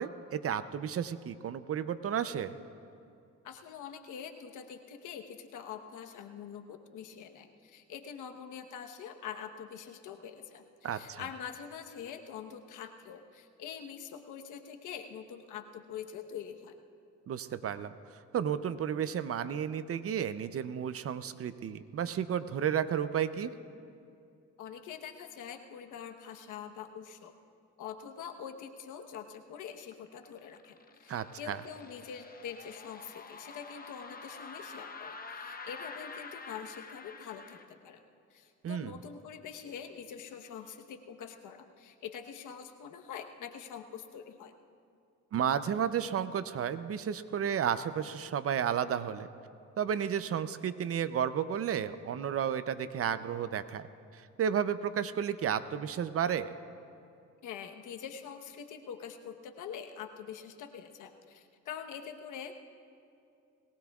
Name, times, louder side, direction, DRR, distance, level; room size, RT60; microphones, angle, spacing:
voice 1, 0.0-2.5 10.8-11.2 17.3-23.5 31.1-31.6 38.6-39.0 45.3-49.3 49.8-53.8 54.1-56.5, right 8 dB, 50° right, 13 dB, 0.6 m, -32 dB
voice 2, 3.4-16.7 24.6-27.3 27.8-38.0 38.3-44.5 57.4-62.5, left 8 dB, 80° left, 5 dB, 1.1 m, -45 dB
sound 1, 29.9-37.6, left 4 dB, 30° left, 1.0 m, -47 dB
21.5 x 18.5 x 2.4 m, 2.5 s
cardioid pair, 90°, 30 cm